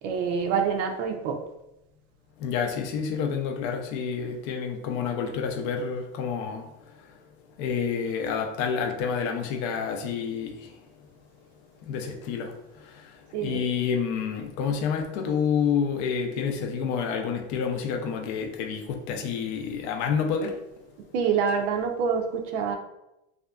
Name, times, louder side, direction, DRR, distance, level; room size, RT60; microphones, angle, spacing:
voice 1, 0.0-1.4 13.3-13.6 21.1-22.7, right 6 dB, 85° right, 4 dB, 0.5 m, -26 dB
voice 2, 2.4-6.6 7.6-10.5 11.8-12.5 13.4-20.5, left 6 dB, 55° left, 4 dB, 0.5 m, -28 dB
2.6 x 2.4 x 2.2 m, 0.91 s
supercardioid pair, 125°, 35 cm